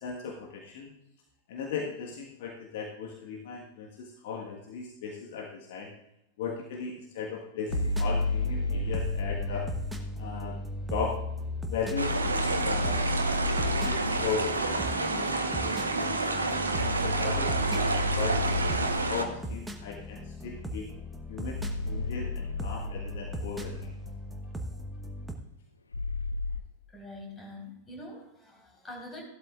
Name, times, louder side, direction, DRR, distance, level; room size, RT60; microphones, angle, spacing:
voice 1, 0.0-0.9 1.5-5.9 6.4-9.7 10.2-10.6 10.9-11.2 11.6-13.1 13.4-16.5 17.0-20.9 21.3-23.9, left 6 dB, 55° left, 1 dB, 1.4 m, -37 dB
sound 1, 7.7-10.0 11.9-14.4 16.7-19.3 21.5-24.1 25.9-26.6, left 2 dB, 75° left, 0.4 m, -32 dB
sound 2, 7.7-25.3, equal, 5° right, 1.1 m, -39 dB
sound 3, 12.0-19.2, right 3 dB, 75° right, 1.0 m, -29 dB
voice 2, 26.9-29.2, left 1 dB, 15° left, 0 dB, 4.1 m, -44 dB
15.5 x 12.0 x 2.4 m, 0.84 s
figure-of-eight pair, 90°, 0 cm